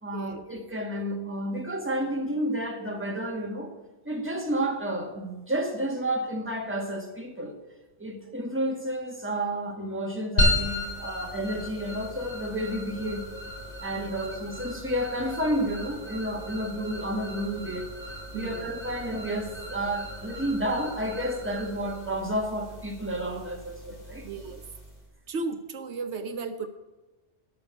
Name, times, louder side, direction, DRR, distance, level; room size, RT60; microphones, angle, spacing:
voice 1, 0.0-3.7 4.0-7.5 8.0-13.3 13.8-17.9 18.3-24.3, right 1 dB, 10° right, 1.6 m, -31 dB
sound 1, 10.4-25.0, left 1 dB, 85° left, 4.7 m, -34 dB
voice 2, 18.3-18.7 24.2-24.6 25.3-26.7, right 4 dB, 75° right, 1.0 m, -35 dB
13.5 x 5.9 x 8.1 m
omnidirectional pair, 1.2 m